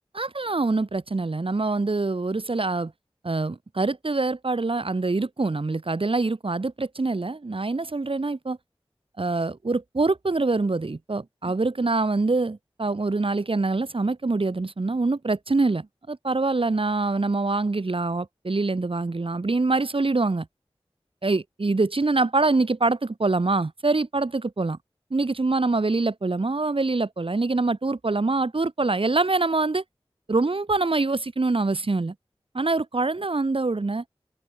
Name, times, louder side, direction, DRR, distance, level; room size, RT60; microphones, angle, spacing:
voice 1, 0.1-2.9 3.2-8.6 9.2-20.5 21.2-24.8 25.1-29.8 30.3-32.1 32.5-34.0, right 3 dB, 60° right, 2.6 m, -25 dB
open air
wide cardioid pair, 65°, 10 cm